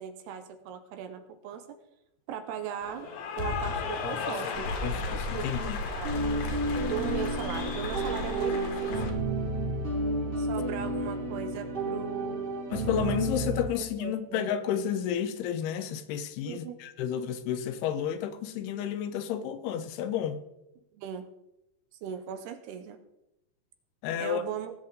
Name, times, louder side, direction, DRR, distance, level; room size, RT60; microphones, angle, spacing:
voice 1, 0.0-1.6 2.3-3.1 3.4-6.2 6.8-9.0 10.4-12.8 13.8-14.5 16.5-16.8 20.9-21.3 22.0-23.0 24.2-24.7, right 9 dB, 75° right, 2.8 m, -38 dB
Cheering / Applause, 2.8-9.1, left 5 dB, 60° left, 2.2 m, -36 dB
voice 2, 4.0-4.4 4.8-5.8 12.7-20.4 24.0-24.4, left 9 dB, 80° left, 2.6 m, -31 dB
Mechanical fan, 4.5-9.9, left 1 dB, 50° right, 2.2 m, -37 dB
sound 1, 6.0-13.7, right 2 dB, 35° right, 2.7 m, -31 dB
18.5 x 7.7 x 3.8 m
omnidirectional pair, 4.9 m